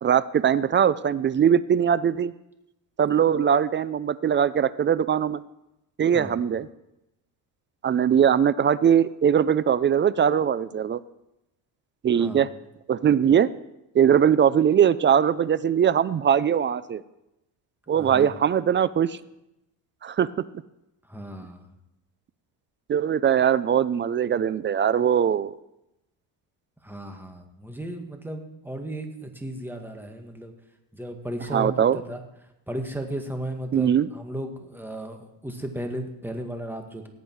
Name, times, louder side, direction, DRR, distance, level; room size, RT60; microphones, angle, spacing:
voice 1, 0.0-2.3 3.0-5.4 6.0-6.7 7.8-11.0 12.0-12.5 12.9-13.5 13.9-17.0 17.9-19.2 20.0-20.4 22.9-25.5 31.5-32.0 33.7-34.1, right 8 dB, 30° right, 17 dB, 0.4 m, -21 dB
voice 2, 12.1-12.4 17.9-18.3 21.1-21.7 26.8-30.5 30.9-32.2 32.7-37.1, right 1 dB, 5° right, 4 dB, 1.9 m, -35 dB
18.0 x 8.2 x 4.7 m, 0.90 s
cardioid pair, 95°, 45 cm